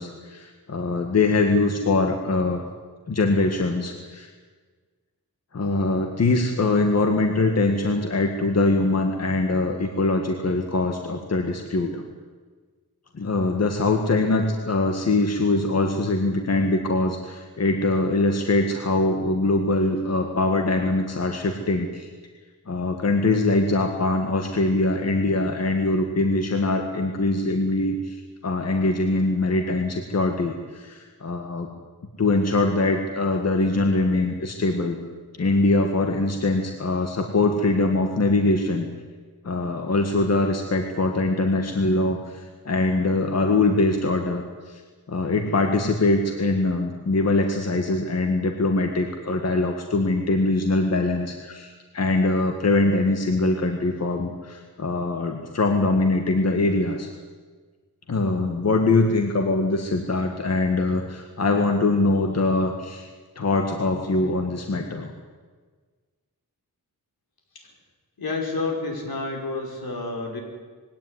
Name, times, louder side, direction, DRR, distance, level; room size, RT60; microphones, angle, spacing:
voice 1, 0.0-2.6 3.1-4.3 5.5-12.0 13.1-22.1 22.7-31.7 32.2-35.0 35.4-38.9 39.4-44.8 45.1-57.1 58.1-63.1 63.4-65.1, left 2 dB, 45° left, 4 dB, 1.8 m, -23 dB
voice 2, 68.2-70.4, left 3 dB, 75° left, 1 dB, 5.6 m, -29 dB
21.0 x 17.5 x 9.9 m, 1.4 s
wide cardioid pair, 165°, 36 cm